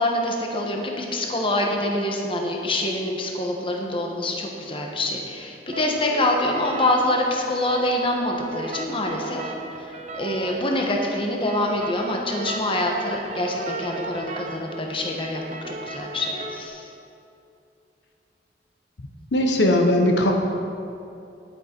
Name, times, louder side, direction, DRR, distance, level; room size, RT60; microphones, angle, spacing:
voice 1, 0.0-16.9, left 1 dB, 30° left, 1 dB, 1.1 m, -25 dB
sound 1, 5.7-16.7, right 3 dB, 45° right, 0.9 m, -36 dB
voice 2, 19.3-20.3, left 1 dB, 75° left, 2 dB, 1.0 m, -19 dB
10.5 x 9.0 x 4.4 m, 2.6 s
head